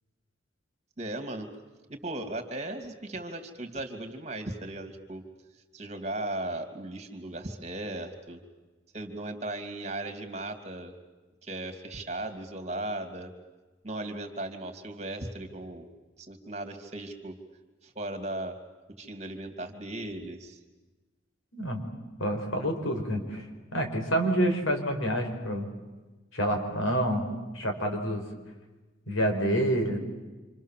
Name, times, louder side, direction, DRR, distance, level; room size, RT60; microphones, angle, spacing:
voice 1, 1.0-1.5 1.9-5.2 5.7-8.4 8.9-10.9 11.4-13.3 13.8-15.9 16.2-17.4 17.8-18.6 19.0-20.6, right 1 dB, 35° right, 6 dB, 2.9 m, -37 dB
voice 2, 22.2-23.5 23.7-25.7 26.3-27.3 27.5-28.2 29.1-30.0, right 1 dB, 85° left, 4 dB, 5.4 m, -27 dB
27.5 x 27.5 x 7.6 m, 1.2 s
head